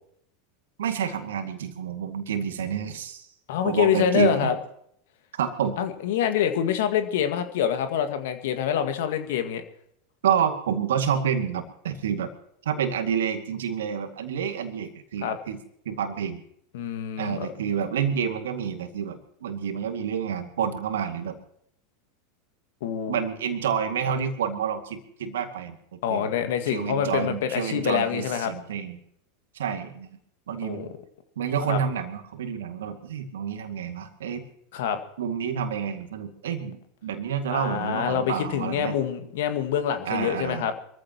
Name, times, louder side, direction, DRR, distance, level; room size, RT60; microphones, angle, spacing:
voice 1, 0.8-3.3 3.6-4.5 5.4-5.8 10.2-12.3 12.6-15.6 15.9-16.4 17.2-21.4 23.1-26.3 26.7-29.0 29.5-30.1 30.5-30.9 31.4-34.4 35.2-39.0 40.1-40.6, right 8 dB, 75° right, 6 dB, 2.2 m, -29 dB
voice 2, 3.5-4.6 5.8-9.6 15.2-15.4 16.7-17.5 22.8-23.2 26.0-28.5 30.6-30.9 31.7-31.8 34.7-35.0 37.5-40.7, left 9 dB, 65° left, 8 dB, 1.9 m, -26 dB
25.0 x 14.5 x 3.0 m, 0.70 s
hypercardioid pair, 85°, 0 cm